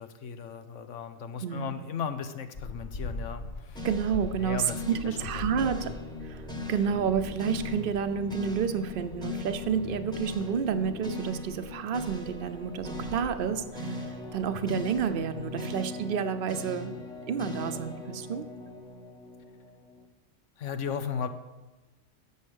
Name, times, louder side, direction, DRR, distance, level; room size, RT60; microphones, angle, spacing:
voice 1, 0.0-3.8 4.4-5.9 20.6-21.3, left 7 dB, 80° left, 10 dB, 1.2 m, -36 dB
voice 2, 1.4-1.7 3.8-5.9 6.3-16.9 17.3-18.4, right 7 dB, 50° right, 10 dB, 0.8 m, -30 dB
sound 1, 2.5-15.7, left 2 dB, 45° left, 0.8 m, -44 dB
sound 2, 3.7-20.0, left 2 dB, 5° left, 1.0 m, -39 dB
11.0 x 7.3 x 6.4 m, 1.1 s
omnidirectional pair, 1.3 m